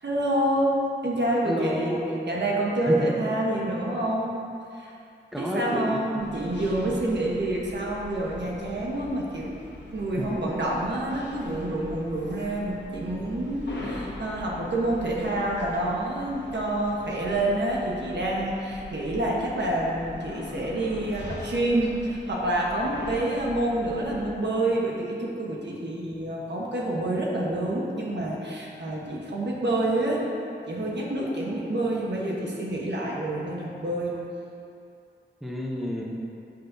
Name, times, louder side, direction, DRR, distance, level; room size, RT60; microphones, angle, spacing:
voice 1, 0.0-2.0 2.3-4.3 4.7-4.9 5.4-9.5 9.9-30.2 30.7-34.1, right 1 dB, 65° right, -3 dB, 1.1 m, -27 dB
voice 2, 1.4-2.3 2.8-3.1 5.3-6.2 6.8-7.0 10.2-10.4 35.4-36.0, equal, ahead, -3 dB, 0.7 m, -30 dB
sound 1, 6.2-24.4, left 2 dB, 70° left, 1.1 m, -41 dB
8.3 x 5.8 x 2.7 m, 2.5 s
wide cardioid pair, 95°, 19 cm